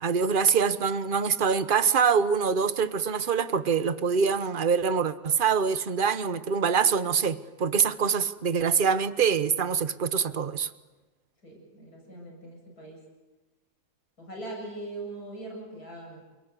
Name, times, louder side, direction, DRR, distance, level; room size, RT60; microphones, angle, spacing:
voice 1, 0.0-10.7, right 6 dB, 35° right, 1.1 m, -25 dB
voice 2, 11.4-13.0 14.2-16.2, right 2 dB, 60° left, 8.6 m, -41 dB
29.0 x 19.5 x 8.3 m
omnidirectional pair, 1.8 m